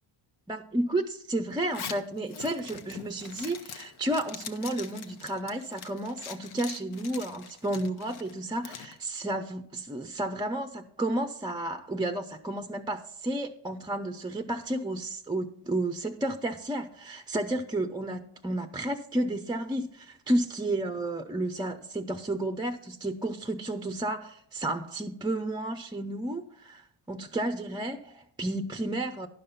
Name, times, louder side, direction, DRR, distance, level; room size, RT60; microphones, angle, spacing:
voice 1, 0.5-29.3, right 1 dB, 10° right, 0.4 m, -32 dB
Zipper (clothing), 1.6-8.9, left 7 dB, 80° left, 0.9 m, -43 dB
11.0 x 5.3 x 5.6 m
cardioid pair, 90°, 49 cm